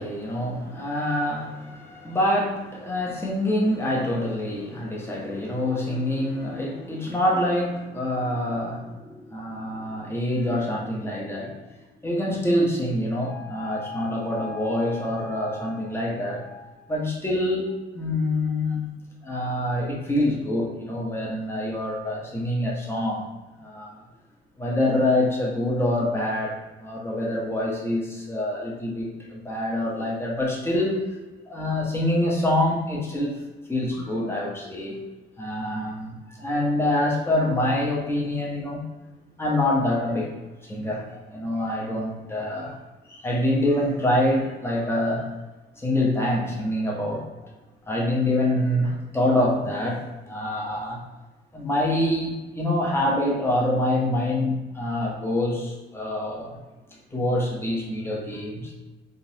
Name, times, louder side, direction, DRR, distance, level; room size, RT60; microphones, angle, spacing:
voice 1, 0.0-11.6 12.0-18.8 19.2-23.3 23.6-24.0 24.6-31.0 31.5-33.4 33.7-35.0 35.4-38.8 39.4-40.3 40.6-42.8 43.0-45.3 45.8-47.2 47.9-51.0 51.5-56.6 57.1-58.7, left 1 dB, 10° left, -3 dB, 0.9 m, -26 dB
3.8 x 2.5 x 2.8 m, 1.2 s
cardioid pair, 90°, 20 cm